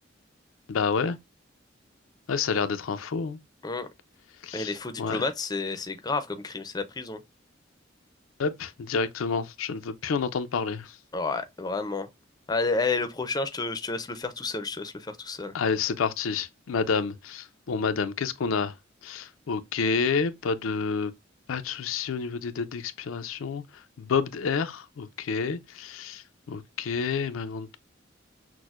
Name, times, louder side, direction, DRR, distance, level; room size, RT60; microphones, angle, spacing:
voice 1, 0.7-1.2 2.3-3.4 4.4-4.7 5.0-5.2 8.4-11.0 15.5-18.7 19.0-21.1 21.5-23.6 24.0-27.8, left 5 dB, 90° left, 0.4 m, -29 dB
voice 2, 4.5-7.2 11.1-12.1 12.5-15.5, left 3 dB, 20° left, 0.4 m, -30 dB
6.1 x 2.0 x 2.3 m
head